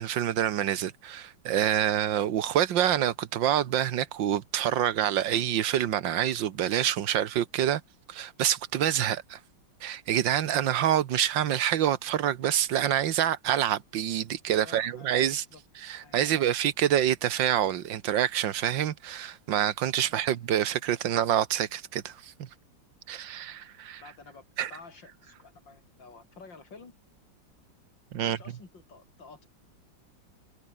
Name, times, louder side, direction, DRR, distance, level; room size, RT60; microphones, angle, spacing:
voice 1, 0.0-7.8 8.1-9.4 9.8-15.4 15.8-22.5 23.1-24.0 24.6-24.7 28.1-28.4, right 10 dB, 80° right, 1.8 m, -27 dB
voice 2, 14.6-15.2 15.5-15.6 16.0-16.4 20.0-20.3 24.0-24.4 24.7-26.9 28.2-29.5, left 4 dB, 75° left, 4.5 m, -50 dB
omnidirectional pair, 2.0 m